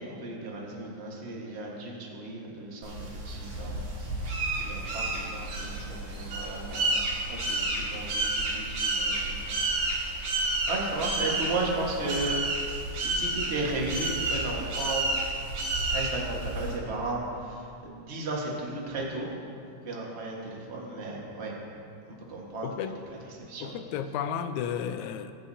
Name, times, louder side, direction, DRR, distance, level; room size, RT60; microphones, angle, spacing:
voice 1, 0.0-3.8 4.6-6.6 7.3-9.6 10.7-12.4 12.9-15.1 15.9-19.3 19.8-21.5 22.1-22.7 23.5-23.7, right 2 dB, 40° right, -3 dB, 1.0 m, -34 dB
sound 1, 2.8-16.8, right 2 dB, 70° right, 3.0 m, -31 dB
voice 2, 22.6-23.0 23.6-25.4, left 8 dB, 80° left, 9 dB, 1.8 m, -33 dB
21.0 x 7.5 x 2.8 m, 2.6 s
omnidirectional pair, 3.6 m